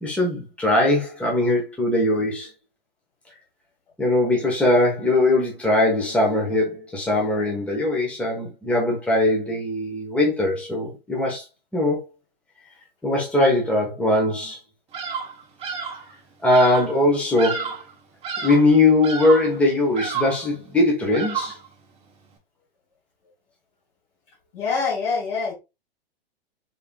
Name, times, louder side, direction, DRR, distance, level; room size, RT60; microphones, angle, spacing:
voice 1, 0.0-2.5 4.0-11.4 11.7-12.0 13.0-14.6 16.4-17.7 18.4-21.6, left 2 dB, 5° left, 1.0 m, -20 dB
Bird vocalization bird call bird song, 14.9-15.4 15.6-16.1 16.5-16.9 17.4-17.9 18.2-18.7 19.0-19.5 20.0-20.5 21.1-21.7, right 6 dB, 20° right, 0.9 m, -30 dB
voice 2, 24.5-25.5, left 5 dB, 65° left, 2.2 m, -25 dB
3.6 x 3.5 x 2.3 m
hypercardioid pair, 120°, 30 cm